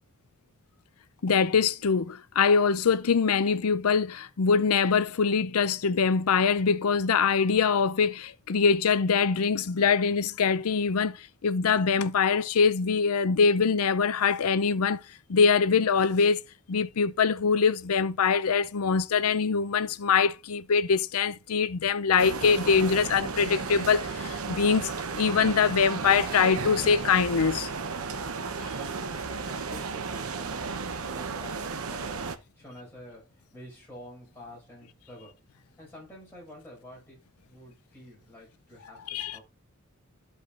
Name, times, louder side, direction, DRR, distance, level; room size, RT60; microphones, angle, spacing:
voice 1, 1.2-15.0 15.3-16.4 16.7-27.7 39.1-39.4, left 5 dB, 90° left, 0.5 m, -23 dB
sound 1, 22.2-32.4, right 4 dB, 80° right, 0.9 m, -34 dB
voice 2, 28.2-35.4 35.8-39.4, equal, 10° left, 5.6 m, -48 dB
13.5 x 5.5 x 2.5 m
head